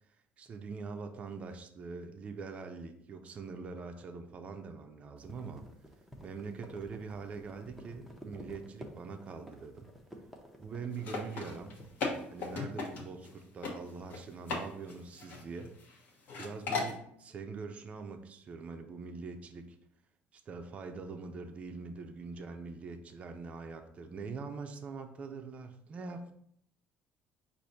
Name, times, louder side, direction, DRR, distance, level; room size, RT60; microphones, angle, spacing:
voice 1, 0.4-5.7 6.2-9.9 10.6-11.8 12.3-15.8 16.4-19.8 20.3-26.3, right 4 dB, 35° right, 5 dB, 0.5 m, -43 dB
sound 1, 5.2-12.6, equal, ahead, 0.7 m, -51 dB
sound 2, 10.9-13.3 13.6-13.7 14.1-14.6 14.9-15.9 16.3-17.0, left 4 dB, 55° left, 1.0 m, -36 dB
4.9 x 2.6 x 4.1 m, 0.67 s
cardioid pair, 135°, 4 cm